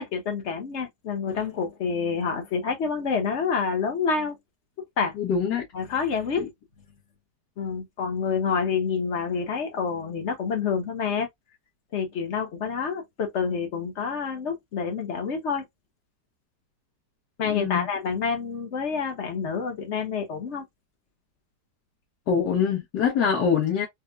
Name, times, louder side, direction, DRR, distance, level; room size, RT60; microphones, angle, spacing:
voice 1, 0.0-4.4 5.0-5.1 5.7-6.5 7.6-11.3 11.9-15.7 17.4-20.6, left 5 dB, 45° left, 1.1 m, -28 dB
voice 2, 5.2-5.6 6.4-6.5 17.4-17.9 22.3-23.9, left 6 dB, 70° left, 1.7 m, -24 dB
4.4 x 2.3 x 2.3 m
omnidirectional pair, 1.9 m